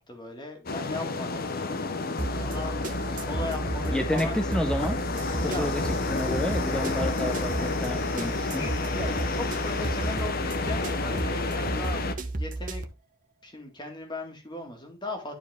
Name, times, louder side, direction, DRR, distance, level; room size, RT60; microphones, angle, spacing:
voice 1, 0.0-1.5 2.3-4.7 5.4-5.7 6.8-6.9 8.9-12.8 13.4-15.3, left 2 dB, 20° left, 3 dB, 2.0 m, -38 dB
sound 1, 0.7-12.1, left 3 dB, 45° left, 0.8 m, -31 dB
sound 2, 2.2-12.9, right 2 dB, 40° right, 0.9 m, -33 dB
voice 2, 3.9-5.0 5.3-5.8 6.1-8.7, left 1 dB, 5° left, 5 dB, 0.7 m, -30 dB
sound 3, 5.1-10.2, left 5 dB, 70° left, 1.8 m, -46 dB
11.5 x 4.7 x 3.5 m, 0.27 s
head